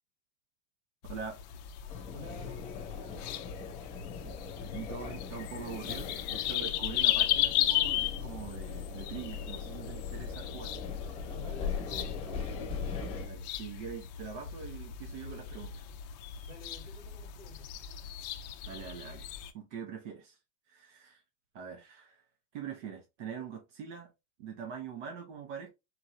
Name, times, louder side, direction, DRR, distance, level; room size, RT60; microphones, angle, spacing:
sound 1, 1.0-19.5, left 12 dB, 40° left, 0.4 m, -36 dB
voice 1, 1.1-1.4 4.6-10.7 13.3-15.8 18.7-19.3 19.5-20.4 20.7-21.2 21.5-22.2 22.5-24.1 24.4-25.7, right 7 dB, 80° right, 1.1 m, -43 dB
sound 2, 1.9-13.3, left 5 dB, 15° left, 1.1 m, -40 dB
voice 2, 2.1-3.2 11.3-12.5 16.4-17.7, left 1 dB, 50° right, 1.8 m, -50 dB
4.5 x 2.8 x 3.1 m
supercardioid pair, 180°, 36 cm